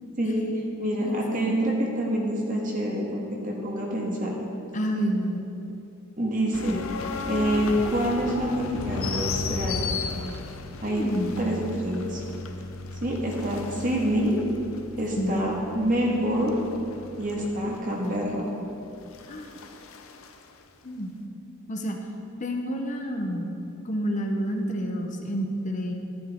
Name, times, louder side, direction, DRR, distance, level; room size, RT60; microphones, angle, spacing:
voice 1, 0.2-0.5 0.8-4.4 6.2-6.8 7.3-10.0 10.8-12.2 13.0-14.4 15.0-16.6 17.2-18.5, equal, 40° right, -2 dB, 1.4 m, -27 dB
voice 2, 1.0-1.5 4.7-5.4 10.9-11.4 15.2-15.4 19.3-19.6 20.8-21.1 21.7-22.0 22.4-23.5 23.8-25.9, equal, 35° left, 3 dB, 0.8 m, -29 dB
sound 1, 6.5-20.4, left 4 dB, 80° left, 0.7 m, -35 dB
12.5 x 8.6 x 3.6 m, 2.9 s
head